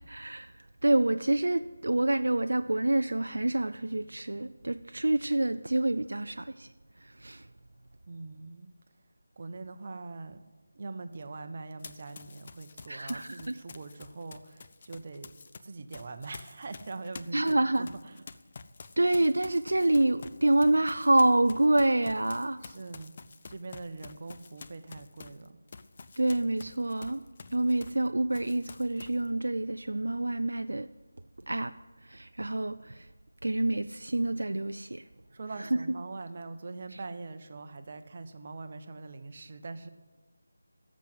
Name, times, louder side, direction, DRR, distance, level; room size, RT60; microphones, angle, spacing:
voice 1, 0.0-6.7 7.0-7.5 12.9-13.5 17.3-17.9 19.0-22.6 26.2-27.2 27.5-30.9 31.5-31.7 32.0-33.1 33.4-35.0 35.6-35.7, right 2 dB, 65° right, 10 dB, 0.4 m, -27 dB
voice 2, 8.1-8.7 9.4-10.4 10.7-15.3 15.6-18.2 22.6-23.1 23.5-25.6 35.3-39.9, right 3 dB, 35° right, 8 dB, 0.9 m, -42 dB
Run, 11.8-15.6 15.9-28.1 28.3-29.3, left 4 dB, 35° left, 0.5 m, -49 dB
13.0 x 7.4 x 9.5 m, 1.2 s
figure-of-eight pair, 160°, 0 cm